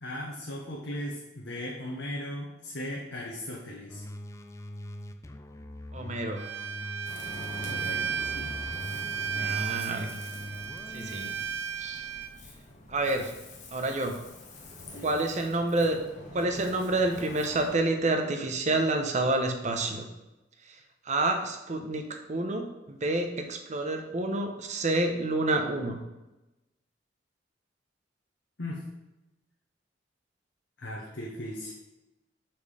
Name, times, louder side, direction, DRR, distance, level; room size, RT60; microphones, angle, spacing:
voice 1, 0.0-4.0 7.6-8.6 8.9-9.6 11.0-11.4 14.8-15.2 28.6-28.9 30.8-31.7, left 1 dB, 70° left, -3 dB, 1.0 m, -38 dB
sound 1, 3.9-11.3, left 1 dB, 15° left, 0.3 m, -43 dB
voice 2, 5.9-6.5 9.3-10.1 10.9-11.3 11.8-12.0 12.9-13.3 13.7-14.2 15.0-16.0 16.3-20.1 21.0-22.0 22.3-26.0, right 2 dB, 40° right, 5 dB, 0.8 m, -28 dB
Bowed string instrument, 6.4-12.3, right 7 dB, 90° right, 0.4 m, -34 dB
Ocean, 7.0-17.8, left 1 dB, 45° left, 1.0 m, -46 dB
5.4 x 4.4 x 4.8 m, 0.99 s
head